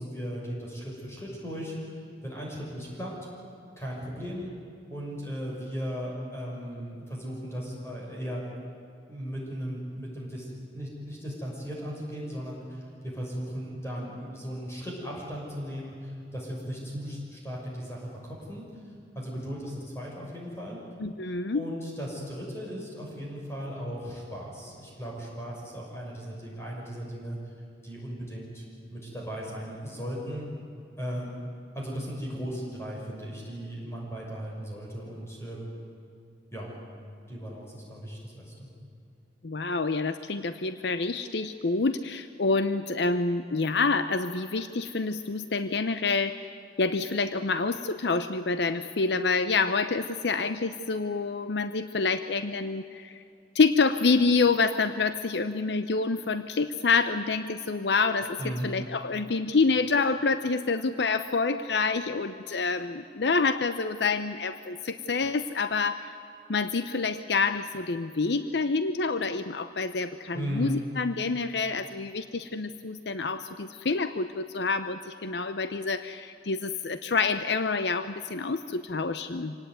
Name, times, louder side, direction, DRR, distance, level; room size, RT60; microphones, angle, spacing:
voice 1, 0.0-2.0 2.2-3.1 3.8-4.5 4.9-8.4 9.1-18.6 19.1-20.8 21.5-27.5 27.8-28.6 28.9-30.5 31.0-31.3 31.7-35.7 36.5-36.7 37.3-38.7 58.4-58.7 70.3-70.8, equal, 15° left, -3 dB, 6.3 m, -37 dB
voice 2, 21.0-21.6 39.4-46.5 46.8-53.2 53.5-66.1 66.5-79.6, left 4 dB, 65° left, 11 dB, 0.7 m, -27 dB
25.5 x 18.0 x 9.5 m, 2.5 s
head